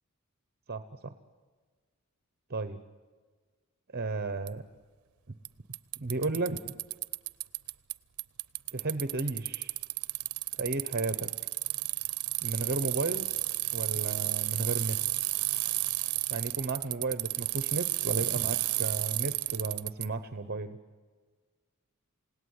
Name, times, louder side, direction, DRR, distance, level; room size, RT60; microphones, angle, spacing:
voice 1, 0.7-1.1 2.5-2.8 3.9-4.6 6.0-6.8 8.7-9.7 10.6-11.3 12.4-13.3 13.7-15.0 16.3-20.8, right 3 dB, 45° right, 10 dB, 1.0 m, -33 dB
Bicycle, 4.5-4.6 5.5-5.6 5.7-7.9 8.2-20.1, right 18 dB, 70° right, 0.7 m, -32 dB
28.0 x 18.0 x 9.7 m, 1.5 s
head